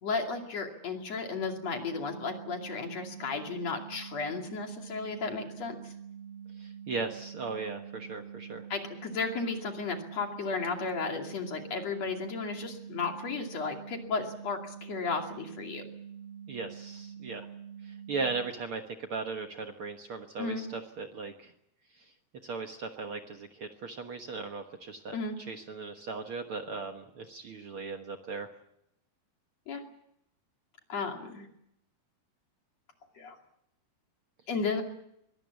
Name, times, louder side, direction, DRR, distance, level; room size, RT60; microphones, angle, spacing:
voice 1, 0.0-5.8 8.7-15.8 20.4-20.7 25.1-25.3 29.7-29.8 30.9-31.5 33.1-33.4 34.5-34.8, left 4 dB, 45° left, 3 dB, 3.4 m, -34 dB
sound 1, 1.5-18.5, right 8 dB, 85° right, 5.9 m, -46 dB
voice 2, 6.6-8.6 16.5-17.5 17.8-21.5 22.0-22.1 22.4-28.5, right 4 dB, 70° right, 5 dB, 1.3 m, -38 dB
23.0 x 18.5 x 8.4 m, 0.77 s
omnidirectional pair, 4.5 m